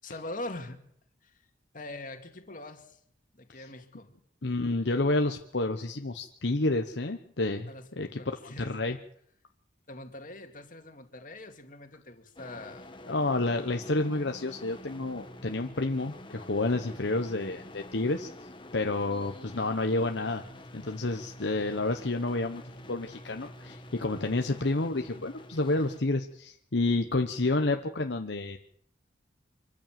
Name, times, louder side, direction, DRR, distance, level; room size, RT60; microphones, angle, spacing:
voice 1, 0.0-0.8 1.2-1.5 1.7-3.0 3.3-4.2 7.7-7.9 8.2-8.7 9.9-12.9, left 2 dB, 45° left, 5 dB, 2.4 m, -43 dB
voice 2, 4.4-7.7 8.0-9.0 13.1-18.3 18.7-20.4 20.7-28.6, left 2 dB, 65° left, 5 dB, 1.1 m, -29 dB
sound 1, 12.4-26.0, left 1 dB, 25° left, 1.4 m, -48 dB
25.0 x 14.0 x 7.6 m, 0.70 s
head